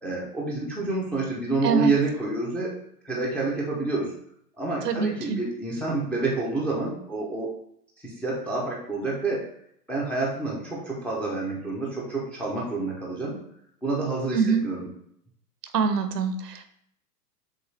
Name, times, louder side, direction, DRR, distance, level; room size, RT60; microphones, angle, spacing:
voice 1, 0.0-2.7 3.0-4.1 4.6-7.5 8.0-9.4 9.9-13.4 13.8-14.9, right 3 dB, 5° left, -5 dB, 0.3 m, -28 dB
voice 2, 4.8-5.4 14.3-14.6 15.7-16.6, right 6 dB, 85° right, 9 dB, 0.8 m, -24 dB
6.8 x 2.3 x 3.1 m, 0.71 s
hypercardioid pair, 110°, 47 cm